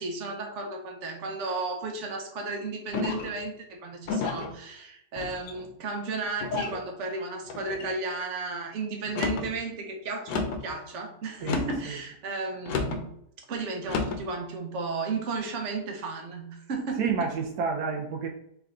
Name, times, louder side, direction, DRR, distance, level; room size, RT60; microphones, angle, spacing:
voice 1, 0.0-13.1 13.5-17.3, right 3 dB, 55° right, 3 dB, 1.0 m, -34 dB
sound 1, 2.9-3.4 4.1-4.5 5.2-5.7 6.4-6.8 7.5-7.9 9.0-9.5 10.3-10.7 11.4-11.9 12.7-13.0 13.8-14.2, left 4 dB, 90° left, 1.3 m, -31 dB
voice 2, 11.4-12.0 17.0-18.3, right 5 dB, 75° right, 1 dB, 1.1 m, -30 dB
3.6 x 3.4 x 3.6 m, 0.74 s
omnidirectional pair, 1.7 m